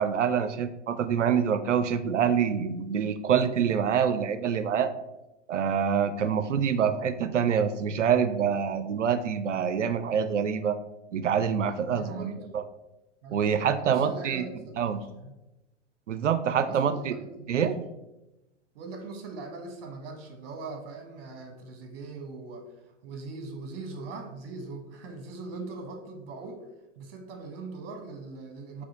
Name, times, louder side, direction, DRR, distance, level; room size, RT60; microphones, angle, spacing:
voice 1, 0.0-4.9 5.5-10.8 11.1-12.6 13.3-14.4 14.8-15.0 16.1-17.1 17.5-17.8, right 7 dB, 80° right, 11 dB, 0.5 m, -26 dB
voice 2, 11.8-12.5 13.2-15.3 16.6-17.6 18.7-26.7 27.0-28.8, right 3 dB, 55° right, 3 dB, 1.1 m, -41 dB
4.1 x 2.8 x 3.8 m, 0.97 s
figure-of-eight pair, 100°, 36 cm